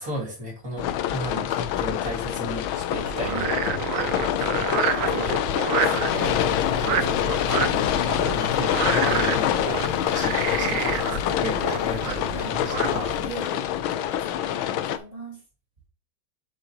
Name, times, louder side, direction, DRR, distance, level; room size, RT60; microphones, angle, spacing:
voice 1, 0.0-5.3 8.4-13.2, equal, 40° right, -3 dB, 3.0 m, -35 dB
sound 1, 0.8-15.0, left 11 dB, 85° left, 1.4 m, -26 dB
voice 2, 1.3-1.8 3.3-4.1 4.8-7.8 9.7-10.0 12.3-12.8 13.2-15.4, right 1 dB, 25° left, -3 dB, 2.7 m, -40 dB
Frog, 3.0-13.3, right 8 dB, 70° right, 0.7 m, -29 dB
sound 2, 6.1-10.8, left 6 dB, 55° left, 1.1 m, -35 dB
7.5 x 6.6 x 3.0 m, 0.33 s
omnidirectional pair, 2.2 m